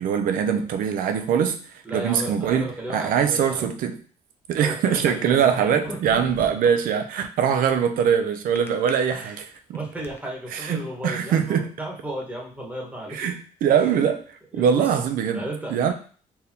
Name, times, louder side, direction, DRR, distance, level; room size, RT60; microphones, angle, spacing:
voice 1, 0.0-1.6 1.9-4.0 4.5-9.8 10.5-11.7 13.1-15.4 15.7-15.9, right 8 dB, 75° right, 7 dB, 0.6 m, -22 dB
voice 2, 1.8-3.7 4.6-6.0 9.1-9.4 9.7-13.2 14.5-14.9 15.3-15.9, right 1 dB, 10° right, -2 dB, 1.3 m, -34 dB
sound 1, 5.6-6.8 8.6-8.9 9.5-10.2, left 2 dB, 15° left, 0.6 m, -39 dB
4.5 x 3.4 x 2.8 m, 0.42 s
cardioid pair, 110°, 15 cm